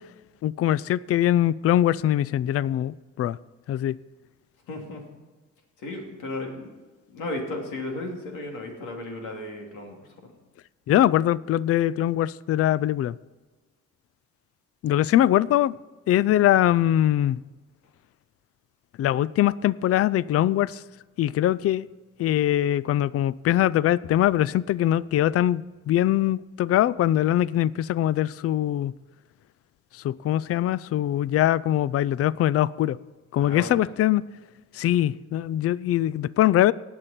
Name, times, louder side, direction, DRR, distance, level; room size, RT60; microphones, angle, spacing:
voice 1, 0.4-3.4 3.7-4.0 10.9-13.2 14.8-15.8 16.1-17.4 19.0-20.8 21.2-21.9 22.2-28.9 29.9-33.0 33.3-34.2 34.7-36.7, left 12 dB, 50° left, 21 dB, 0.4 m, -22 dB
voice 2, 4.7-5.0 5.8-6.7 7.1-10.3 33.4-33.8, left 2 dB, 90° left, 1 dB, 2.8 m, -35 dB
18.5 x 6.8 x 4.3 m, 1.3 s
cardioid pair, 90°, 30 cm